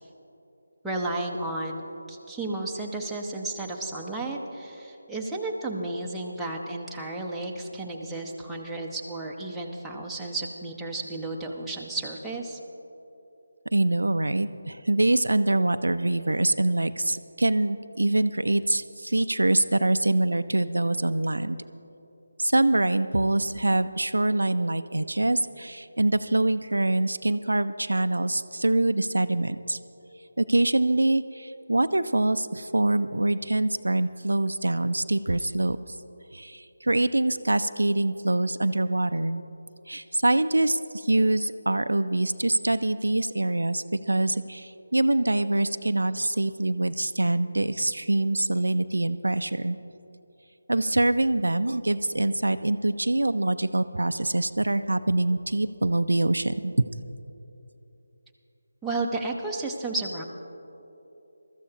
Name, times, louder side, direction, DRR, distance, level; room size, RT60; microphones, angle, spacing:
voice 1, 0.8-1.8 2.1-12.6 58.8-60.2, right 2 dB, 5° right, -4 dB, 0.8 m, -32 dB
voice 2, 13.7-21.6 22.4-29.8 30.4-36.0 36.3-39.4 39.9-49.8 50.7-56.7, right 2 dB, 80° right, 11 dB, 0.5 m, -24 dB
22.0 x 13.5 x 2.9 m, 3.0 s
figure-of-eight pair, 160°, 0 cm